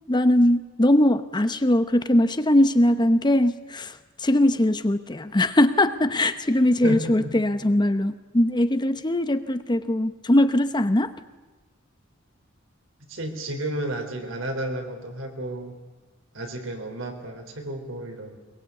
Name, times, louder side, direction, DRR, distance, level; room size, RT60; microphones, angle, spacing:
voice 1, 0.1-11.1, left 1 dB, 20° left, 11 dB, 0.8 m, -21 dB
voice 2, 6.8-7.3 13.1-15.8 16.3-18.4, right 1 dB, 75° right, 4 dB, 3.8 m, -32 dB
22.5 x 21.0 x 8.3 m, 1.2 s
head